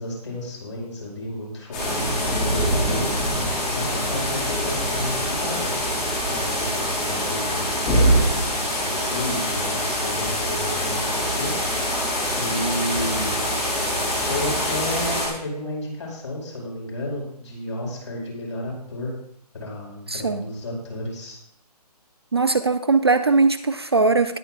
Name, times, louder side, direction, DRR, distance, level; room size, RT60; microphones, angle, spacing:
voice 1, 0.0-3.1 3.5-5.7 6.3-11.5 12.3-13.4 14.1-19.1 19.5-21.4, left 1 dB, 45° left, -2 dB, 5.1 m, -32 dB
sound 1, 1.7-15.3, equal, 5° left, 0.7 m, -24 dB
voice 2, 20.1-20.4 22.3-24.4, right 3 dB, 40° right, 11 dB, 0.4 m, -20 dB
19.0 x 8.9 x 2.4 m, 0.71 s
hypercardioid pair, 175°, 21 cm